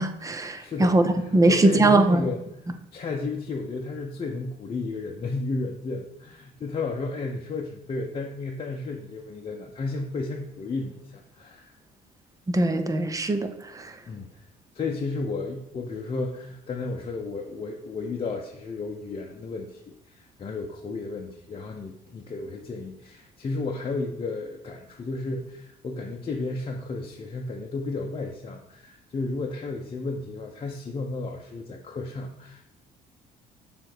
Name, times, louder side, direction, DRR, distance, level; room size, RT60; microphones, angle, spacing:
voice 1, 0.0-2.3 12.5-13.9, right 2 dB, 20° right, 8 dB, 0.7 m, -21 dB
voice 2, 0.6-2.4 2.9-11.7 14.1-14.5 14.7-32.6, left 3 dB, 35° left, 0 dB, 0.8 m, -33 dB
6.8 x 3.4 x 6.1 m, 0.83 s
cardioid pair, 110°, 17 cm